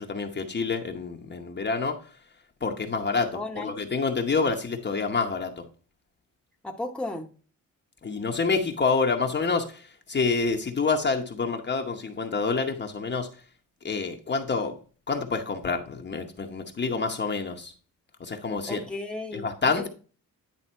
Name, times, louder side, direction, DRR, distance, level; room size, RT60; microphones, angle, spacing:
voice 1, 0.0-2.1 2.6-5.7 8.0-13.3 13.8-14.8 15.1-17.7 18.2-18.8 19.3-19.9, left 4 dB, 30° left, 0.9 m, -27 dB
voice 2, 3.3-3.8 6.6-7.3 18.7-19.4 19.8-19.9, left 2 dB, 5° left, 0.9 m, -34 dB
9.9 x 3.5 x 4.4 m
cardioid pair, 115°, 35 cm